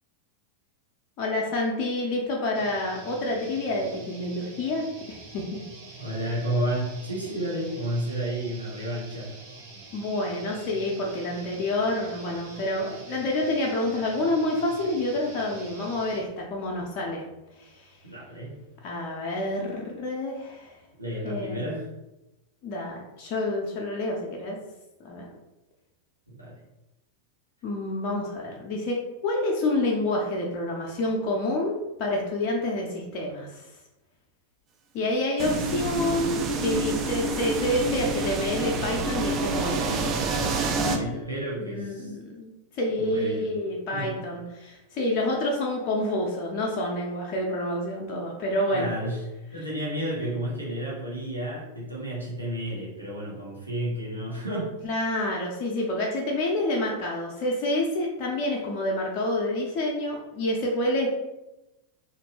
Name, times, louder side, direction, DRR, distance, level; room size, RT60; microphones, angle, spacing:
voice 1, 1.2-5.4 5.9-6.0 9.9-17.2 17.6-17.9 18.8-20.7 21.2-21.7 22.6-24.6 25.0-25.2 27.6-29.0 29.2-33.7 34.9-40.0 40.7-42.5 42.7-48.9 54.8-61.1, left 1 dB, 40° left, -2 dB, 0.5 m, -28 dB
sound 1, 2.5-16.2, right 3 dB, 45° right, 0.9 m, -46 dB
voice 2, 6.0-9.3 18.0-18.5 21.0-21.9 26.4-26.6 40.9-42.1 43.0-43.5 43.9-44.1 48.7-49.2 49.5-54.7, right 1 dB, 85° right, -6 dB, 0.9 m, -31 dB
sound 2, 35.4-41.0, right 3 dB, 30° right, 0.4 m, -27 dB
2.9 x 2.5 x 2.9 m, 0.99 s
figure-of-eight pair, 90°, 0 cm